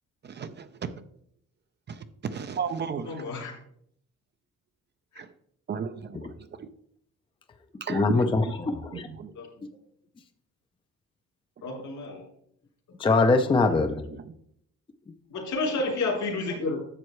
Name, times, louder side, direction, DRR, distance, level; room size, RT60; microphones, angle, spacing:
voice 1, 0.2-0.9 1.9-3.2 5.2-5.3 5.7-6.3 6.6-6.7 7.8-8.2 8.4-8.5 8.9-9.3 11.8-11.9 14.1-14.2, right 6 dB, 35° right, 10 dB, 0.5 m, -34 dB
voice 2, 3.0-3.5 9.4-9.5 11.6-12.2 15.3-16.8, left 3 dB, 75° left, 0 dB, 3.4 m, -30 dB
voice 3, 7.9-9.1 13.0-14.0, left 3 dB, 15° left, 7 dB, 0.5 m, -23 dB
11.0 x 7.4 x 3.1 m, 0.70 s
cardioid pair, 150°, 30 cm